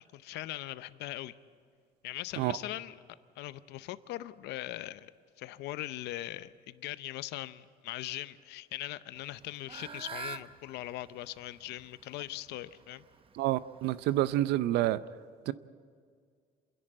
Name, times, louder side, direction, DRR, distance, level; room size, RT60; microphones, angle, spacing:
voice 1, 0.0-1.4 2.0-2.9 3.4-5.1 5.4-13.0, left 15 dB, 85° left, 15 dB, 0.7 m, -40 dB
Fowl / Bird, 9.2-14.5, right 5 dB, 30° right, 0.8 m, -47 dB
voice 2, 13.3-15.0 15.5-15.6, right 14 dB, 85° right, 16 dB, 0.6 m, -28 dB
27.5 x 11.0 x 8.9 m, 2.1 s
cardioid pair, 110°, 17 cm